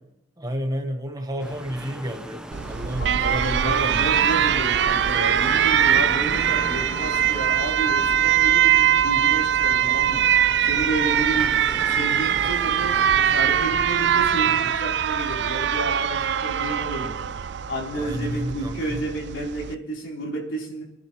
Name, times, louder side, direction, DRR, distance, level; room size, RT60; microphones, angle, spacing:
voice 1, 0.4-4.5 17.9-19.0, equal, 20° right, 5 dB, 1.1 m, -32 dB
sound 1, 1.4-14.8, equal, 5° right, 0.8 m, -38 dB
Alarm, 2.5-19.7, right 9 dB, 60° right, 0.4 m, -22 dB
voice 2, 2.9-10.2 10.6-11.6 11.9-17.2 17.7-20.8, right 2 dB, 85° left, -3 dB, 3.9 m, -31 dB
27.0 x 10.5 x 3.1 m, 0.88 s
head